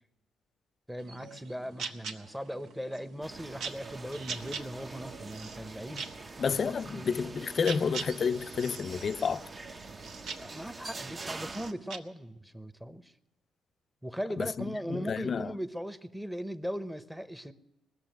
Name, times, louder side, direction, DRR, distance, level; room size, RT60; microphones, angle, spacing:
voice 1, 0.9-6.0 6.5-7.3 10.4-13.1 14.0-17.5, equal, 5° right, 0.9 m, -39 dB
sound 1, 1.0-12.0, right 5 dB, 80° right, 1.2 m, -44 dB
sound 2, 3.2-11.7, right 3 dB, 30° right, 0.8 m, -45 dB
voice 2, 6.4-9.4 14.4-14.5 14.9-15.6, left 6 dB, 45° left, 0.5 m, -30 dB
20.0 x 7.1 x 9.3 m
cardioid pair, 90°, 0 cm